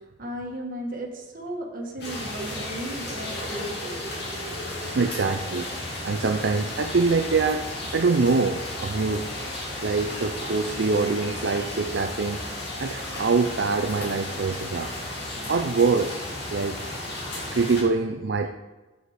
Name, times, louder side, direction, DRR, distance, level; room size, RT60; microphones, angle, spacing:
voice 1, 0.2-4.0, equal, 50° right, 1 dB, 1.7 m, -35 dB
sound 1, 2.0-17.8, left 1 dB, 60° left, 2.5 m, -34 dB
voice 2, 4.3-5.7 6.0-9.3 9.8-12.4 12.8-14.9 15.5-16.8 17.5-18.5, right 4 dB, 65° right, 6 dB, 0.5 m, -25 dB
8.1 x 7.9 x 4.9 m, 1.2 s
head